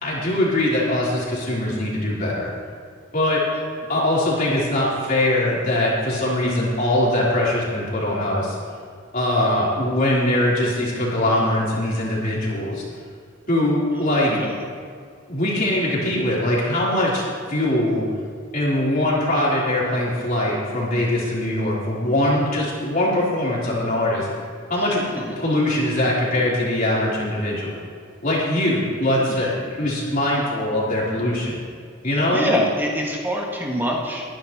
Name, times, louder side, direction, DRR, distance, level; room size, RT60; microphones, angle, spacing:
voice 1, 0.0-2.5 3.1-3.4 3.9-8.6 9.1-12.8 13.5-14.4 15.3-17.2 17.5-18.1 18.5-24.3 24.7-25.1 25.4-27.7 28.2-31.6 32.0-32.5, left 1 dB, 45° left, -6 dB, 3.5 m, -22 dB
voice 2, 32.1-34.2, equal, 10° right, -2 dB, 1.7 m, -25 dB
22.0 x 10.5 x 2.9 m, 2.1 s
head